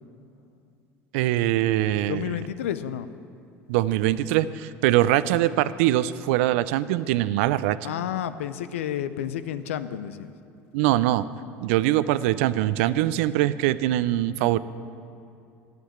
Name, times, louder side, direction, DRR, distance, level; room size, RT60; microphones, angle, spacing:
voice 1, 1.1-2.4 3.7-7.8 10.7-11.2 11.6-14.6, right 14 dB, 75° right, 15 dB, 0.4 m, -22 dB
voice 2, 2.1-3.1 7.8-10.3, left 10 dB, 90° left, 13 dB, 0.5 m, -30 dB
12.0 x 7.8 x 8.6 m, 2.6 s
supercardioid pair, 90°, 7 cm